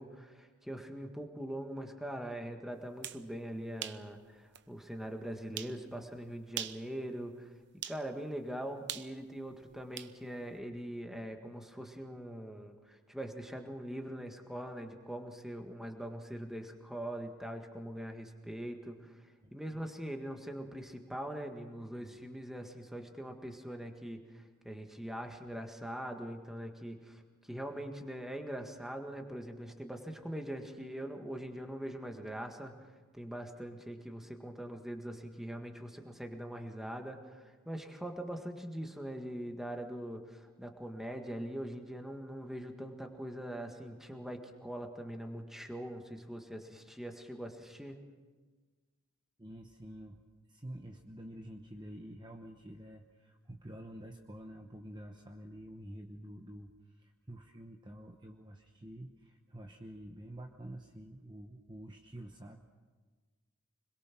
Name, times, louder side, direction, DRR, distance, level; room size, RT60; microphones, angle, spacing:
voice 1, 0.0-7.5 7.9-48.0, right 1 dB, ahead, 3 dB, 1.8 m, -42 dB
sound 1, 2.8-3.2 3.8-4.0 4.5-4.6 5.6-5.8 6.5-6.9 7.8-8.0 8.9-10.1, right 10 dB, 55° right, 0.8 m, -41 dB
voice 2, 19.4-19.9 22.0-22.2 49.4-50.2 50.5-62.6, equal, 20° right, 3 dB, 1.0 m, -48 dB
25.5 x 22.0 x 6.1 m, 1.4 s
head